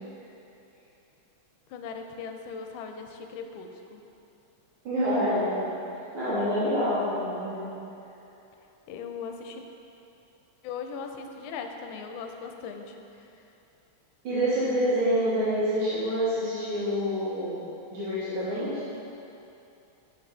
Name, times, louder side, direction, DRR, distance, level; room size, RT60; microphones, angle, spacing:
voice 1, 1.7-4.0 8.9-9.6 10.6-13.3, left 5 dB, 80° left, 4 dB, 1.3 m, -39 dB
voice 2, 4.8-5.7 6.1-7.7 14.2-17.6 17.9-18.9, equal, 80° right, -11 dB, 2.2 m, -27 dB
7.6 x 4.8 x 3.5 m, 2.9 s
omnidirectional pair, 2.3 m